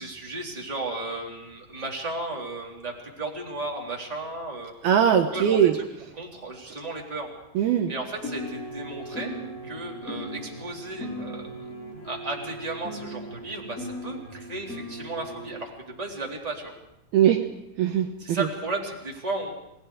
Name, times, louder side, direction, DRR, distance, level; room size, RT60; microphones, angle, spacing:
voice 1, 0.0-4.7 5.3-5.8 6.2-7.3 7.9-9.4 9.6-11.5 12.0-16.7 18.2-19.5, right 2 dB, 10° right, -1 dB, 3.3 m, -34 dB
voice 2, 4.8-5.8 7.6-7.9 17.1-17.5 17.8-18.5, right 9 dB, 70° right, 5 dB, 2.8 m, -21 dB
sound 1, 8.2-15.6, equal, 20° left, 5.5 m, -38 dB
29.5 x 19.5 x 5.0 m, 0.86 s
omnidirectional pair, 4.9 m